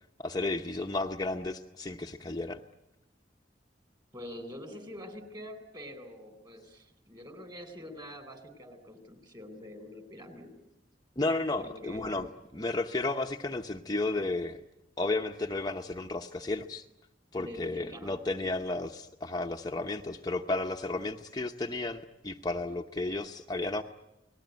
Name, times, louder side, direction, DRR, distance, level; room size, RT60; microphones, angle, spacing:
voice 1, 0.2-2.6 11.2-14.6 15.0-16.8 17.3-23.8, left 2 dB, 20° left, 3 dB, 0.9 m, -33 dB
voice 2, 4.1-10.5 11.6-12.3 17.3-18.1, left 1 dB, 25° right, 9 dB, 4.2 m, -45 dB
30.0 x 19.5 x 9.4 m, 0.94 s
head